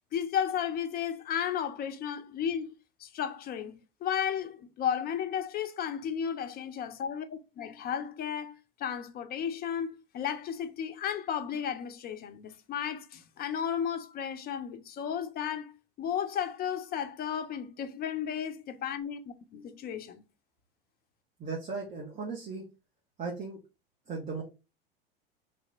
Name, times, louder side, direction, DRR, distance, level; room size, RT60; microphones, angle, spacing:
voice 1, 0.1-2.7 3.0-15.7 16.0-20.2, left 8 dB, 30° left, 0.7 m, -34 dB
voice 2, 21.4-22.6 23.2-23.6 24.1-24.4, right 4 dB, 25° right, 1.3 m, -36 dB
3.4 x 2.9 x 4.0 m
hypercardioid pair, 80°, 29 cm